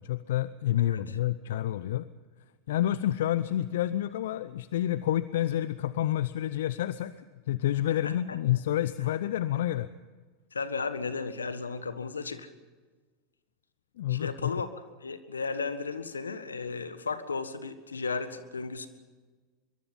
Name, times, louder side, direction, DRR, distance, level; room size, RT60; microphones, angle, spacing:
voice 1, 0.0-2.1 2.7-7.1 7.5-9.9 14.0-14.6, left 12 dB, 70° left, 16 dB, 0.6 m, -29 dB
voice 2, 10.5-12.5 14.1-14.7 15.0-18.9, left 4 dB, 90° left, 12 dB, 1.5 m, -34 dB
24.0 x 23.0 x 5.6 m, 1.4 s
hypercardioid pair, 85°, 0 cm